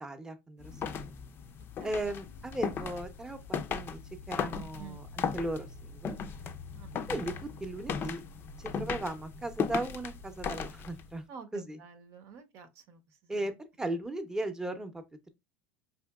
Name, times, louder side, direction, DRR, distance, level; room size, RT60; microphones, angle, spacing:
voice 1, 0.0-1.0 1.8-4.0 4.3-6.2 7.1-8.2 8.6-11.2 11.5-11.8 13.3-13.5 13.8-15.3, right 1 dB, 10° right, 0.7 m, -37 dB
sound 1, 0.6-11.1, left 6 dB, 35° left, 0.5 m, -37 dB
voice 2, 11.3-13.0, right 6 dB, 60° right, 0.8 m, -49 dB
5.0 x 2.8 x 2.3 m
supercardioid pair, 105°, 6 cm